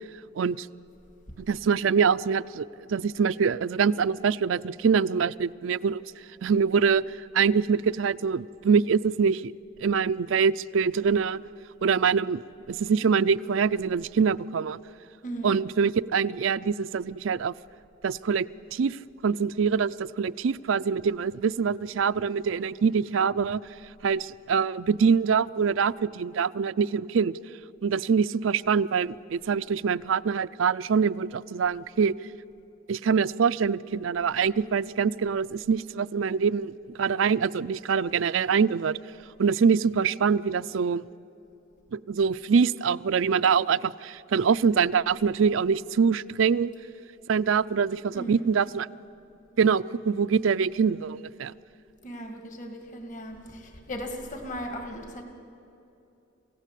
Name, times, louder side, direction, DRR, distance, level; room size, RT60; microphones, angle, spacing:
voice 1, 0.4-0.7 1.4-6.0 6.4-9.5 9.8-11.4 11.8-12.4 12.7-14.8 15.4-17.5 18.0-23.6 24.0-27.3 27.8-32.2 32.9-39.0 39.4-41.1 41.9-46.7 47.3-48.9 49.6-51.5, right 6 dB, 75° right, 13 dB, 0.4 m, -24 dB
voice 2, 48.1-48.5 52.0-55.2, equal, 40° left, 5 dB, 2.1 m, -37 dB
27.5 x 16.0 x 8.3 m, 2.9 s
head